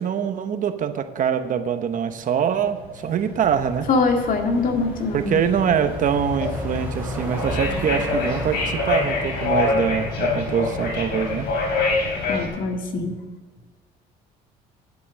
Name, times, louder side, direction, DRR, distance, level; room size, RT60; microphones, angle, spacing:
voice 1, 0.0-3.9 5.1-11.5, right 8 dB, 50° right, 9 dB, 1.0 m, -24 dB
sound 1, 2.4-12.5, left 3 dB, 80° left, 3.5 m, -27 dB
sound 2, 3.4-12.5, right 1 dB, 10° right, 3.0 m, -36 dB
voice 2, 3.9-5.4 12.3-13.2, left 3 dB, 55° left, 3 dB, 2.0 m, -23 dB
10.5 x 8.3 x 6.4 m, 1.4 s
cardioid pair, 110°, 17 cm